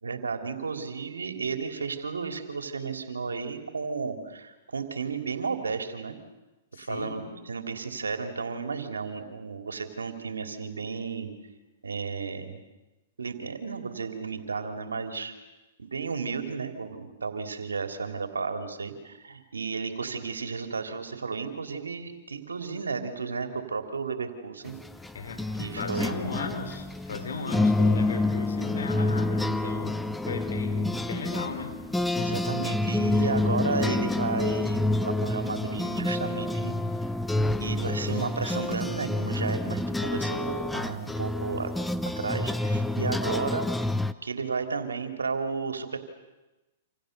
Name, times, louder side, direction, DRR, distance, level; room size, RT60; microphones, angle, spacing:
voice 1, 0.0-6.2 6.8-11.3 11.8-12.6 13.2-15.3 15.8-24.8 25.6-26.2 32.2-36.7 37.6-41.7 42.2-43.7 44.2-46.0, right 5 dB, 90° right, 6 dB, 3.1 m, -33 dB
voice 2, 6.7-7.3 25.1-25.5 25.7-31.7, left 5 dB, 80° left, 6 dB, 5.1 m, -36 dB
sound 1, 24.7-44.1, left 2 dB, 5° left, 0.9 m, -28 dB
28.5 x 27.5 x 6.7 m, 1.1 s
hypercardioid pair, 120°, 0 cm